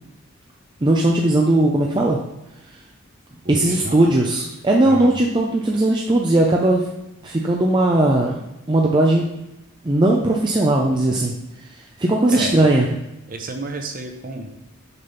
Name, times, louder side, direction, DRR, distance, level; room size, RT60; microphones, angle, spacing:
voice 1, 0.8-2.2 3.5-6.9 7.2-8.3 8.7-9.3 9.8-11.3 12.0-12.9, right 1 dB, 20° right, -1 dB, 0.5 m, -18 dB
voice 2, 3.4-4.0 4.8-5.1 12.3-12.6 13.3-14.5, right 2 dB, 40° right, 4 dB, 0.8 m, -31 dB
6.7 x 3.5 x 5.6 m, 0.92 s
head